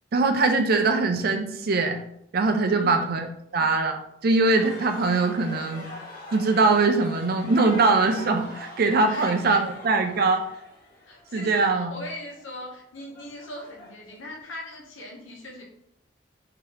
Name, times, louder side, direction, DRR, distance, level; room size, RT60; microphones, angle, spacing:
voice 1, 0.1-2.0 2.3-3.3 3.5-5.8 6.3-10.4 11.3-11.9, right 3 dB, 50° right, 6 dB, 0.4 m, -22 dB
voice 2, 2.7-3.2 9.1-9.7 11.1-15.6, left 1 dB, 85° left, -1 dB, 1.0 m, -39 dB
sound 1, 4.4-14.3, left 1 dB, 50° left, 1.4 m, -43 dB
3.6 x 2.8 x 3.3 m, 0.75 s
head